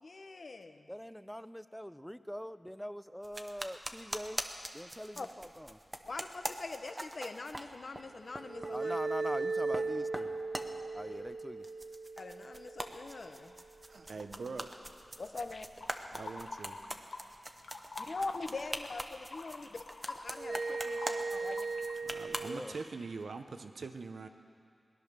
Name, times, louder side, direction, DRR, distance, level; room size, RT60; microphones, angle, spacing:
voice 1, 0.0-0.9 5.2-5.3 6.1-8.9 11.0-11.2 12.2-13.5 15.2-15.7 18.0-19.8 20.1-21.7, left 3 dB, 60° left, 8 dB, 0.8 m, -43 dB
voice 2, 0.9-4.4 4.7-5.8 8.7-10.3 10.9-11.6 22.3-22.7, equal, 5° left, 14 dB, 0.4 m, -43 dB
sound 1, 3.2-8.1 8.3-8.8 9.4-9.9 10.1-11.3 11.6-22.5, right 1 dB, 20° right, 1.0 m, -43 dB
sound 2, 8.3-13.6 20.3-22.6, right 3 dB, 55° right, 0.4 m, -37 dB
voice 3, 13.9-14.8 16.1-16.8 22.0-24.3, right 4 dB, 80° right, 8 dB, 0.7 m, -43 dB
sound 3, 15.8-17.3 17.6-22.0, left 3 dB, 90° left, 0.9 m, -46 dB
18.0 x 10.5 x 6.7 m, 2.4 s
wide cardioid pair, 65°, 0 cm